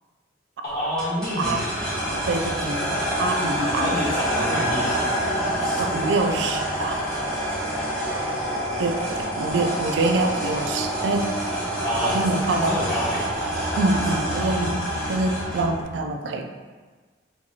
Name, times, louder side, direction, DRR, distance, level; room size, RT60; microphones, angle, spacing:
voice 1, 0.6-1.7 2.3-2.5 3.7-5.2 5.6-6.0 11.8-12.2 12.5-13.3 14.1-14.6, equal, 55° left, -8 dB, 1.3 m, -29 dB
sound 1, 1.0-15.8, equal, 5° left, 0.9 m, -27 dB
voice 2, 2.3-4.0 4.5-4.7 5.8-7.0 7.3-7.5 8.8-11.3 11.9-13.0 13.7-14.8 15.1-16.5, right 2 dB, 70° right, 5 dB, 0.3 m, -25 dB
4.4 x 2.3 x 2.7 m, 1.4 s
head